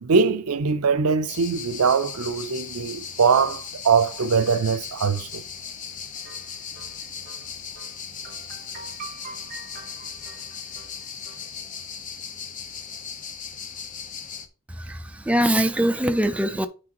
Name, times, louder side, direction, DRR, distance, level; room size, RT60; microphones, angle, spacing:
voice 1, 0.0-5.4, right 5 dB, 75° right, 0.6 m, -22 dB
sound 1, 1.3-14.5, left 7 dB, 35° left, 0.9 m, -37 dB
sound 2, 6.2-7.4 7.7-7.9 8.2-11.5, right 4 dB, 45° right, 3.7 m, -44 dB
voice 2, 14.7-16.7, right 1 dB, 5° right, 0.5 m, -23 dB
8.4 x 6.1 x 3.0 m
head